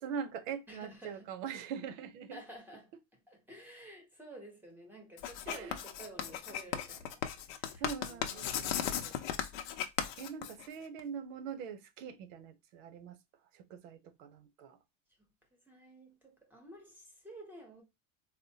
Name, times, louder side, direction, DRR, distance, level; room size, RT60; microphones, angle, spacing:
voice 1, 0.0-2.4 5.5-5.8 7.8-9.1 10.2-13.2 13.5-14.8, right 7 dB, 90° right, 0.8 m, -43 dB
voice 2, 0.7-1.3 2.3-9.7 15.2-15.3 15.6-17.8, right 1 dB, 5° right, 0.8 m, -52 dB
Writing, 5.2-11.0, left 9 dB, 65° left, 0.7 m, -37 dB
4.2 x 2.1 x 2.7 m
cardioid pair, 165°, 38 cm